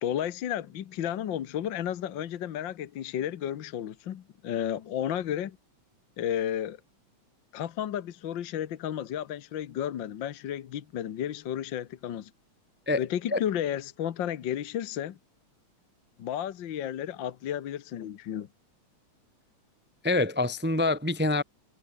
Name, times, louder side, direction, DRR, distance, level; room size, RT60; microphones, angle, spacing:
voice 1, 0.0-5.6 6.2-6.8 7.5-12.3 13.0-15.2 16.2-18.5, left 10 dB, 60° left, 1.3 m, -32 dB
voice 2, 20.0-21.4, left 2 dB, 15° right, 0.4 m, -25 dB
omnidirectional pair, 3.3 m